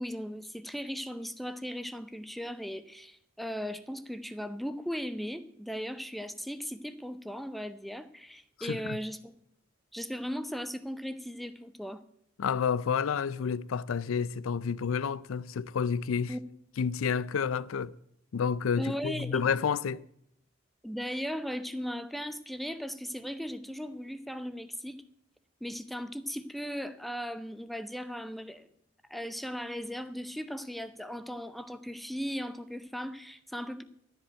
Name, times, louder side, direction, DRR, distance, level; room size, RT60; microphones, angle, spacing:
voice 1, 0.0-9.3 9.9-12.0 16.3-16.4 18.8-19.4 20.8-25.0 25.6-28.7 29.1-33.8, equal, ahead, 0.5 m, -37 dB
voice 2, 8.6-9.0 12.4-16.3 16.8-17.9 18.3-20.0, left 6 dB, 75° left, 0.4 m, -30 dB
13.5 x 5.2 x 9.0 m
head